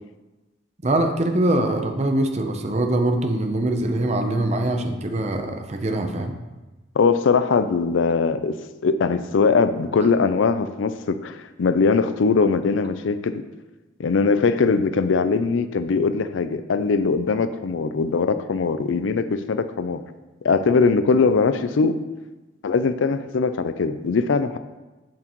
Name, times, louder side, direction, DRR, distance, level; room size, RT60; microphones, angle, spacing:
voice 1, 0.8-6.3, right 1 dB, 35° right, 5 dB, 0.7 m, -23 dB
voice 2, 7.0-8.5 8.8-13.4 14.0-20.0 20.4-22.0 22.6-24.6, left 4 dB, 80° left, 11 dB, 0.4 m, -21 dB
7.8 x 7.3 x 3.1 m, 1.1 s
head